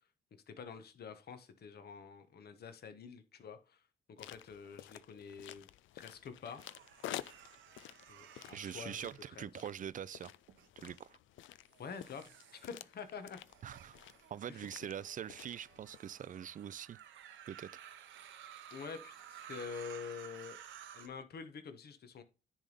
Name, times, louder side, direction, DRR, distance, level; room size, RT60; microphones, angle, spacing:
voice 1, 0.5-3.8 4.1-5.7 5.9-6.6 8.1-9.5 11.8-13.4 14.5-14.7 18.7-20.6 20.9-22.2, left 6 dB, 55° left, 1.1 m, -47 dB
sound 1, 4.2-16.0, left 14 dB, 75° left, 0.4 m, -51 dB
sound 2, 6.5-9.9 10.5-11.0 11.7-21.1, right 10 dB, 75° right, 0.9 m, -55 dB
voice 2, 8.5-10.3 10.8-11.2 13.6-14.0 14.3-17.0 17.5-17.8, right 9 dB, 40° right, 0.4 m, -44 dB
10.0 x 3.5 x 4.0 m
cardioid pair, 90°, 20 cm